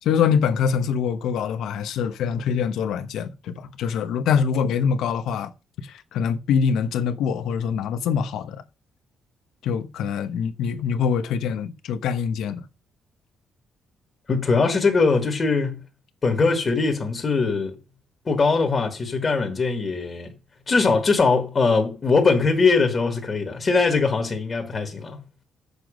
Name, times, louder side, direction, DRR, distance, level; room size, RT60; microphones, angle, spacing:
voice 1, 0.0-5.5 5.8-8.6 9.6-12.7, left 7 dB, 80° left, 1.0 m, -24 dB
voice 2, 14.3-15.8 16.2-17.8 18.2-20.3 20.7-25.2, left 4 dB, 30° left, 1.7 m, -21 dB
7.9 x 6.8 x 5.1 m
cardioid pair, 140°, 0 cm